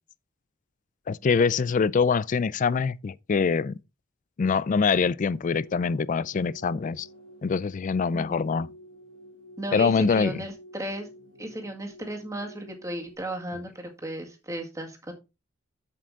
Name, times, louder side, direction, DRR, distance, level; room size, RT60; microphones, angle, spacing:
voice 1, 1.1-3.7 4.4-7.1 7.4-8.7 9.7-10.4, left 5 dB, 40° left, 0.3 m, -24 dB
sound 1, 5.0-13.2, equal, 80° right, 2.3 m, -50 dB
voice 2, 8.1-8.5 9.6-11.1 11.4-15.1, right 1 dB, 15° right, 1.9 m, -35 dB
7.6 x 7.4 x 3.7 m
head